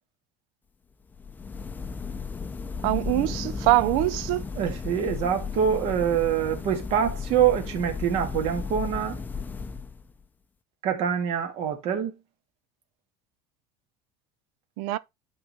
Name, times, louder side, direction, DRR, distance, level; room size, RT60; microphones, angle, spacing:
sound 1, 1.1-10.2, left 5 dB, 15° left, 0.5 m, -34 dB
voice 1, 2.8-4.4 14.8-15.0, right 17 dB, 70° right, 0.5 m, -23 dB
voice 2, 4.6-9.2 10.8-12.1, right 8 dB, 55° right, 1.9 m, -25 dB
11.5 x 3.9 x 3.0 m
supercardioid pair, 130°, 13 cm